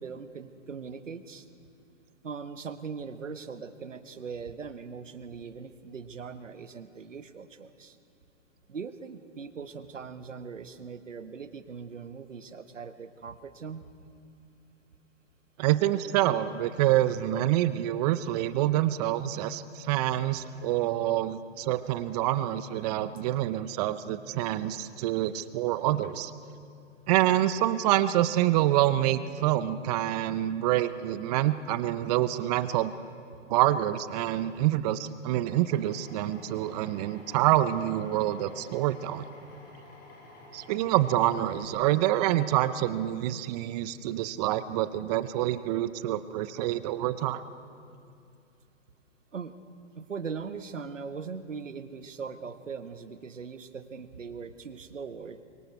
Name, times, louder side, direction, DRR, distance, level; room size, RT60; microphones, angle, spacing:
voice 1, 0.0-1.5 2.2-8.0 8.7-13.8 34.6-34.7 49.3-49.5 49.9-55.4, right 5 dB, 85° right, 10 dB, 1.3 m, -40 dB
voice 2, 15.6-26.3 27.1-32.9 33.5-39.3 40.5-47.4, right 13 dB, 35° right, 14 dB, 0.7 m, -27 dB
Drill, 35.7-41.7, left 1 dB, 25° left, 5.8 m, -51 dB
29.5 x 24.0 x 4.7 m, 2.5 s
hypercardioid pair, 125°, 36 cm